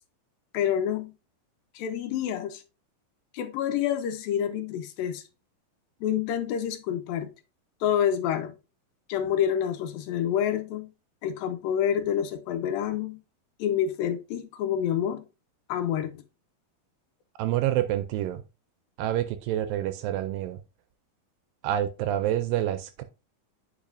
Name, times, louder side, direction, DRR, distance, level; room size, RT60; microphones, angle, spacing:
voice 1, 0.5-1.1 1.8-2.6 3.3-5.2 6.0-7.3 7.8-8.5 9.1-10.9 11.2-13.2 13.6-15.2 15.7-16.2, left 9 dB, 80° left, 2.3 m, -28 dB
voice 2, 17.4-18.4 19.0-20.6 21.6-23.0, right 12 dB, 80° right, 2.1 m, -27 dB
8.8 x 5.1 x 2.6 m
omnidirectional pair, 4.3 m